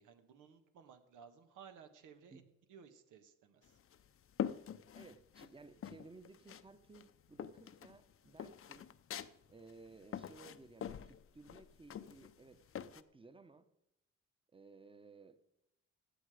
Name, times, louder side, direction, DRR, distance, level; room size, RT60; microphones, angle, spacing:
voice 1, 0.0-2.4 2.7-3.8, right 7 dB, 85° right, 1.6 m, -58 dB
sound 1, 3.6-5.5 5.8-6.7 6.9-13.0, left 9 dB, 45° left, 0.7 m, -45 dB
voice 2, 4.9-8.9 9.5-12.6 12.9-13.7 14.5-15.4, right 3 dB, 15° right, 1.1 m, -58 dB
16.0 x 9.5 x 5.1 m
cardioid pair, 90°, 30 cm